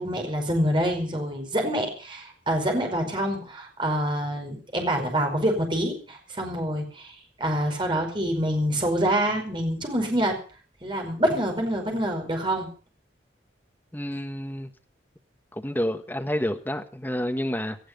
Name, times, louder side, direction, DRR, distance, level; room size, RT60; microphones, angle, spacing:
voice 1, 0.0-10.4 10.8-12.7, equal, 25° right, 5.0 m, -26 dB
voice 2, 13.9-14.7 15.5-17.8, equal, 10° left, 1.5 m, -29 dB
18.0 x 14.0 x 5.3 m
head